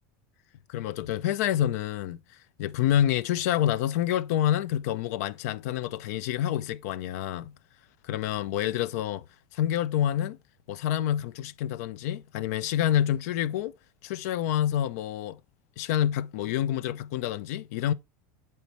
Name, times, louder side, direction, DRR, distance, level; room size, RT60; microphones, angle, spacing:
voice 1, 0.7-2.2 2.6-7.5 8.0-9.2 9.5-10.4 10.7-13.7 14.0-15.4 15.8-17.9, left 11 dB, 75° left, 0.5 m, -27 dB
8.2 x 4.5 x 3.0 m
supercardioid pair, 155°, 9 cm